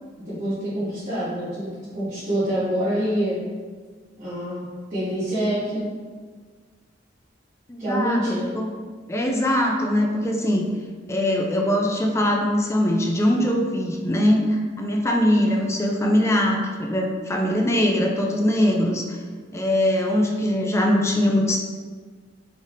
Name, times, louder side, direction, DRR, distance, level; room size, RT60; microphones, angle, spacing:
voice 1, 0.2-3.4 4.2-4.6 4.9-5.9 7.8-8.5, equal, 40° right, -15 dB, 1.4 m, -26 dB
voice 2, 7.7-8.7 9.1-10.7 11.1-19.2 19.5-21.6, left 1 dB, 15° left, 1 dB, 0.4 m, -22 dB
3.9 x 3.4 x 2.5 m, 1.6 s
head